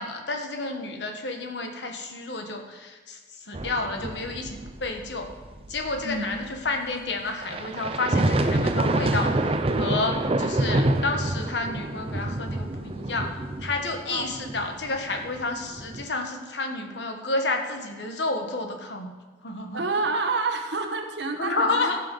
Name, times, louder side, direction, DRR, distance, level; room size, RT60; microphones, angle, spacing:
voice 1, 0.0-5.3 5.7-13.3 13.6-19.1 19.4-19.8 21.4-22.0, left 3 dB, 85° left, 4 dB, 1.3 m, -30 dB
sound 1, 3.5-6.7 7.4-16.0, right 1 dB, 35° right, 0.6 m, -27 dB
voice 2, 19.7-21.9, right 3 dB, 85° right, 4 dB, 1.3 m, -28 dB
15.0 x 5.8 x 5.3 m, 1.3 s
head